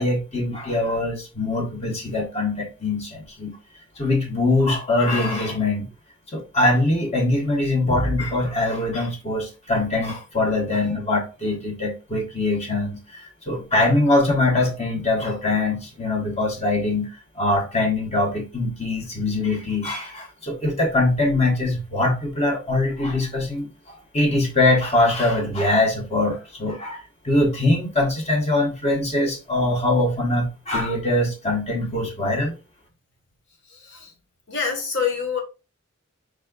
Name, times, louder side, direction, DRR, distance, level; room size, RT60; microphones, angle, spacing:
voice 1, 0.0-3.6 4.0-5.9 6.3-17.1 17.4-27.0 27.2-32.5, left 2 dB, 30° left, 1.3 m, -22 dB
voice 2, 33.7-34.1 34.5-35.4, left 6 dB, 60° left, 1.5 m, -26 dB
4.9 x 4.2 x 2.4 m
head